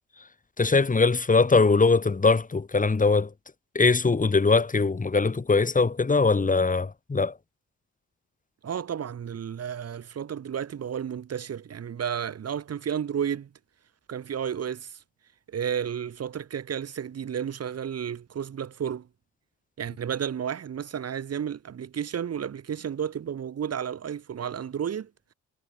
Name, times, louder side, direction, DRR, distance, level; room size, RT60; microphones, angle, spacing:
voice 1, 0.6-3.3 3.8-7.3, left 4 dB, 25° left, 5.5 m, -21 dB
voice 2, 8.6-13.5 14.1-15.0 15.5-19.1 19.8-25.1, right 8 dB, 55° right, 4.4 m, -32 dB
cardioid pair, 90°, 30 cm